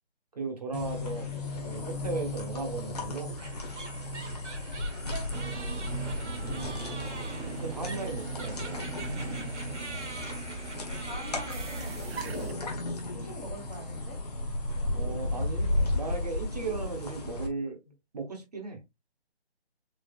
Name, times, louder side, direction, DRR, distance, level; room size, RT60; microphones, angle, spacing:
voice 1, 0.3-1.3 1.6-3.3 6.2-6.8 7.4-8.9 14.9-15.7 15.9-17.8 18.1-18.8, right 4 dB, 35° right, 1.3 m, -36 dB
sound 1, 0.7-17.5, left 2 dB, 35° left, 1.4 m, -34 dB
sound 2, 3.4-12.4, right 3 dB, 90° right, 1.9 m, -45 dB
sound 3, 5.3-12.5, right 7 dB, 65° right, 0.5 m, -42 dB
voice 2, 10.9-12.7 13.1-14.2, equal, 10° left, 1.3 m, -44 dB
7.0 x 3.2 x 2.4 m
hypercardioid pair, 170°, 34 cm